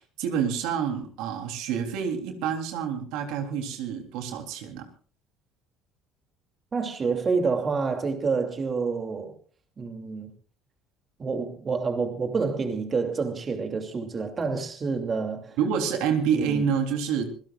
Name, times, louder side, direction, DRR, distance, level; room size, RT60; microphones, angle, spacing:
voice 1, 0.0-4.9 15.6-17.3, right 7 dB, 75° right, 3.5 m, -28 dB
voice 2, 6.7-9.3 9.8-10.3 11.2-15.6 16.3-16.6, right 4 dB, 30° right, 2.8 m, -28 dB
26.0 x 16.5 x 2.5 m
supercardioid pair, 105°, 0 cm